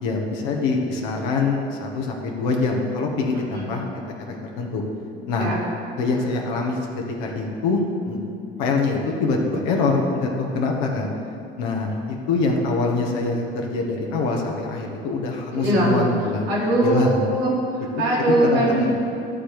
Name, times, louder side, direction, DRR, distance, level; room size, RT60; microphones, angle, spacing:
voice 1, 0.0-4.8 5.3-5.5 6.0-6.8 7.2-8.2 8.6-11.1 11.6-16.5 16.8-17.3 17.9-19.0, left 3 dB, 60° left, 0 dB, 1.7 m, -24 dB
voice 2, 3.3-3.8 5.3-5.6 15.5-16.0 16.5-18.9, right 1 dB, 70° right, -6 dB, 2.9 m, -22 dB
13.0 x 5.0 x 8.0 m, 2.6 s
figure-of-eight pair, 60°, 31 cm